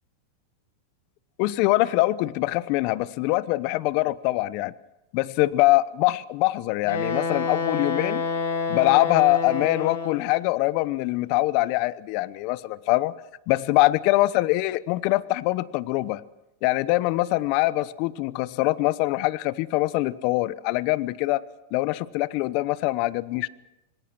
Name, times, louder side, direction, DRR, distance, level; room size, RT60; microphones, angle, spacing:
voice 1, 1.4-4.7 5.1-8.2 8.7-13.1 13.5-16.2 16.6-21.4 21.7-23.5, left 19 dB, 55° left, 17 dB, 0.9 m, -23 dB
Wind instrument woodwind instrument, 6.8-10.3, left 4 dB, 80° left, 5.2 m, -28 dB
26.5 x 20.0 x 6.1 m, 0.94 s
hypercardioid pair, 110°, 0 cm